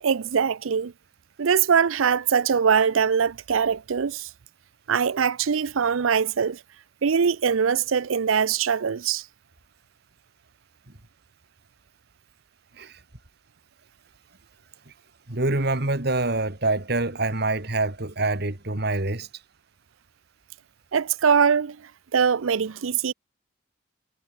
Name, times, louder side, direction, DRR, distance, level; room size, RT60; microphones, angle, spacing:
voice 1, 0.0-0.9 1.4-4.3 4.9-6.6 7.0-9.2 20.9-21.8 22.1-23.1, right 6 dB, 85° right, 0.5 m, -22 dB
voice 2, 15.3-19.3, right 2 dB, 55° right, 2.2 m, -25 dB
head